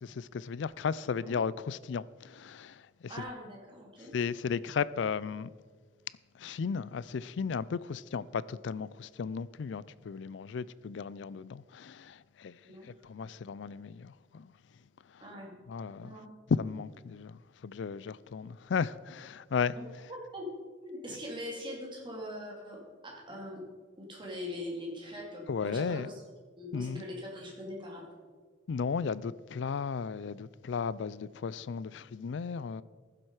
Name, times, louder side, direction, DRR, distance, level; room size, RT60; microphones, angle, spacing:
voice 1, 0.0-2.8 4.1-5.5 6.4-12.6 12.9-14.5 15.7-16.2 16.5-19.7 25.5-26.1 26.7-27.0 28.7-32.8, left 6 dB, 70° left, 0.4 m, -35 dB
voice 2, 3.1-4.1 12.6-12.9 15.2-15.5 16.0-16.3 19.8-19.9 20.1-20.5 20.8-23.6 24.0-26.1 26.6-28.0, left 1 dB, 25° right, 2.9 m, -42 dB
15.0 x 7.7 x 4.8 m
head